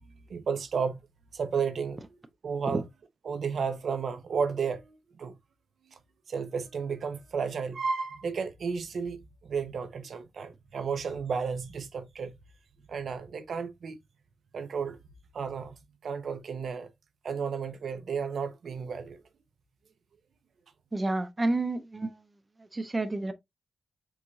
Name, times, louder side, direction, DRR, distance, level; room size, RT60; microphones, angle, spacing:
voice 1, 0.3-1.0 1.3-2.2 2.4-2.9 3.2-5.4 6.3-12.3 12.9-14.0 14.5-15.0 15.3-15.7 16.0-16.9 17.2-19.2, right 6 dB, 70° right, 0.7 m, -33 dB
voice 2, 20.9-22.1 22.7-23.3, right 2 dB, 25° right, 0.6 m, -29 dB
4.7 x 3.5 x 2.7 m
wide cardioid pair, 100°, 0 cm